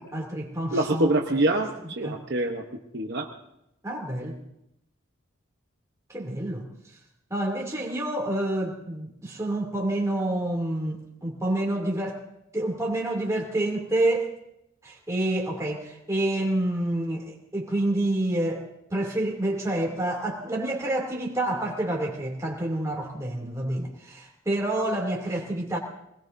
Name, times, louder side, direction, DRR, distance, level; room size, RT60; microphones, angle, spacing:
voice 1, 0.1-1.4 1.8-2.2 3.8-4.4 6.1-6.7 7.3-12.2 12.5-14.3 14.8-25.8, right 1 dB, 15° right, -2 dB, 2.6 m, -28 dB
voice 2, 0.7-1.7 2.0-2.6 2.9-3.3, right 2 dB, 50° right, 2 dB, 1.0 m, -24 dB
23.5 x 20.0 x 2.7 m, 0.82 s
head